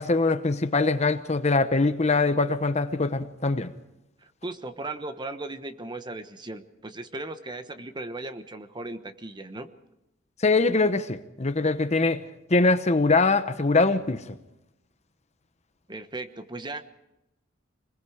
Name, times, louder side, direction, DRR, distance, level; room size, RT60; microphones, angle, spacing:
voice 1, 0.0-3.7 10.4-12.2 12.5-14.2, left 3 dB, 35° left, 0.9 m, -23 dB
voice 2, 4.2-9.7 15.9-16.8, right 2 dB, 25° right, 1.1 m, -37 dB
26.0 x 20.5 x 5.0 m
head